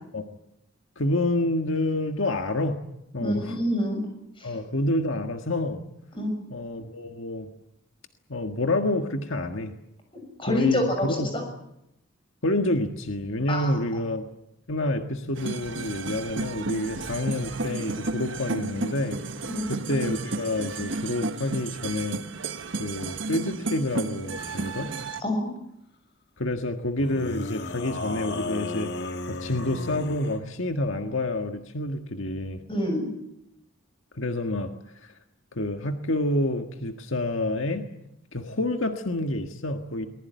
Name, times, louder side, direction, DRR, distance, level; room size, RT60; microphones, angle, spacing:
voice 1, 1.0-2.8 3.1-3.6 4.4-5.8 6.5-7.5 8.3-9.7 10.5-11.3 12.4-14.3 14.7-19.2 19.7-22.2 22.8-24.9 26.4-28.9 29.3-32.6 34.1-34.7 35.0-35.1 35.5-37.9 38.3-40.1, left 1 dB, 75° left, 5 dB, 1.6 m, -28 dB
voice 2, 3.2-4.0 4.4-4.5 6.1-6.4 10.1-11.4 13.5-13.7 19.5-19.7 25.2-25.5 32.7-33.1, left 1 dB, 25° left, 4 dB, 6.8 m, -27 dB
sound 1, 15.4-25.2, right 3 dB, 65° right, 1.1 m, -33 dB
sound 2, 24.4-24.9 27.0-30.4, left 2 dB, 55° left, 1.4 m, -35 dB
23.0 x 20.0 x 9.4 m, 0.83 s
head